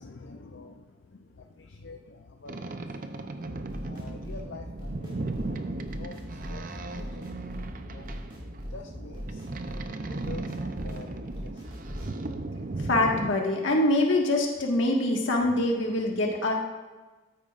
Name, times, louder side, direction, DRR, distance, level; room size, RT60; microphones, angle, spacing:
voice 1, 0.0-2.6 3.1-8.2 8.7-9.4 10.1-11.6 11.9-12.7 15.4-15.7, left 3 dB, 70° left, 3 dB, 0.6 m, -48 dB
Boat Water vehicle, 2.5-13.3, right 2 dB, 45° right, 0.6 m, -36 dB
sound 1, 3.4-12.1, equal, 25° right, 2.3 m, -40 dB
voice 2, 12.9-16.5, left 1 dB, 90° left, 0 dB, 1.6 m, -24 dB
13.5 x 9.1 x 2.5 m, 1.2 s
head